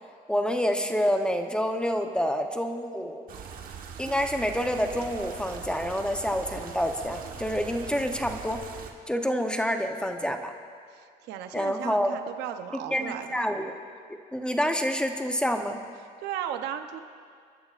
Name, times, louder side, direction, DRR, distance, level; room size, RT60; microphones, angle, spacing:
voice 1, 0.3-3.2 4.0-8.6 9.1-10.5 11.5-12.2 12.7-13.7 14.1-15.8, equal, 5° left, 5 dB, 0.9 m, -28 dB
sound 1, 3.3-8.9, right 7 dB, 55° right, 1.3 m, -41 dB
voice 2, 10.9-13.4 16.2-17.0, right 10 dB, 85° right, 7 dB, 0.9 m, -36 dB
29.0 x 11.0 x 2.5 m, 2.1 s
cardioid pair, 110°, 17 cm